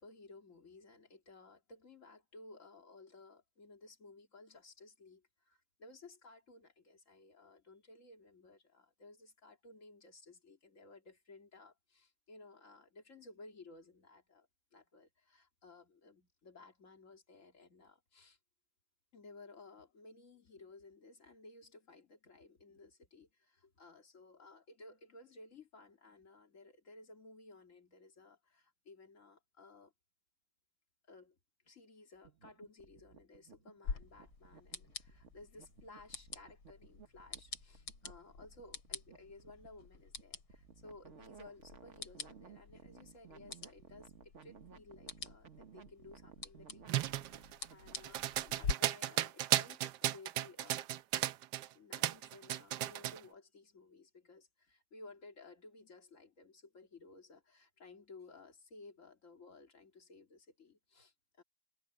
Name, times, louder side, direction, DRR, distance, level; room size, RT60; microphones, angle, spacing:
voice 1, 0.0-18.4 19.1-29.9 31.1-31.4 31.6-50.9 51.7-61.4, left 3 dB, 40° left, 2.7 m, -57 dB
sound 1, 32.1-48.4, right 6 dB, 40° right, 1.4 m, -59 dB
sound 2, 33.8-48.7, left 4 dB, 85° left, 3.9 m, -47 dB
sound 3, 46.9-51.7 51.9-53.2, right 13 dB, 70° right, 1.1 m, -35 dB
omnidirectional pair, 2.2 m